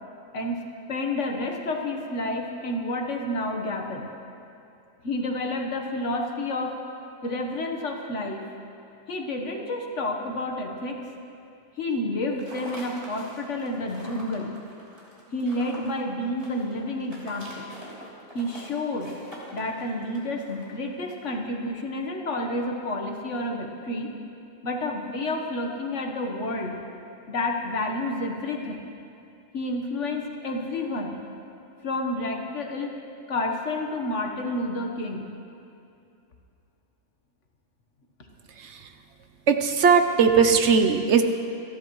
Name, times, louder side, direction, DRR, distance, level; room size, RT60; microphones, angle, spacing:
voice 1, 0.9-4.1 5.0-6.8 7.2-8.4 9.1-11.0 11.8-14.6 15.3-17.7 18.3-19.1 19.5-24.1 24.6-26.8 27.3-28.8 29.5-31.2 31.8-32.9 33.3-35.2, left 1 dB, 65° left, 2 dB, 1.5 m, -30 dB
sound 1, 12.3-21.3, equal, 25° right, 3.2 m, -44 dB
voice 2, 38.6-38.9 39.5-41.2, right 6 dB, 65° right, 7 dB, 1.0 m, -19 dB
28.0 x 11.0 x 3.1 m, 2.6 s
omnidirectional pair, 1.4 m